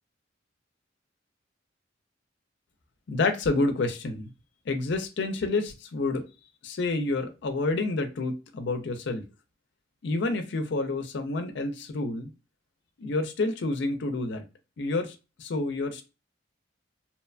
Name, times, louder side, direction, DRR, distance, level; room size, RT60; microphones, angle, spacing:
voice 1, 3.1-4.3 4.7-6.3 6.6-9.2 10.0-12.3 13.0-14.4 14.8-16.1, left 3 dB, 65° left, 7 dB, 0.5 m, -29 dB
2.8 x 2.1 x 2.3 m, 0.28 s
head